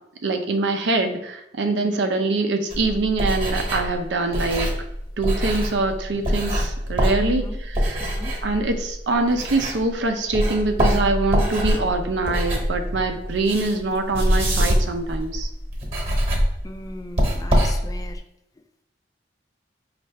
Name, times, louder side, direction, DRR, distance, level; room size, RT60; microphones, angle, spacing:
voice 1, 0.2-4.7 5.2-7.5 7.8-8.0 8.4-15.5, right 3 dB, 85° right, 5 dB, 0.6 m, -24 dB
sound 1, 2.7-10.0 10.3-18.2, equal, 35° right, 1.1 m, -24 dB
voice 2, 7.2-7.6 8.0-8.4 16.6-18.2, left 2 dB, 20° left, 6 dB, 0.3 m, -39 dB
5.4 x 2.4 x 3.2 m, 0.83 s
head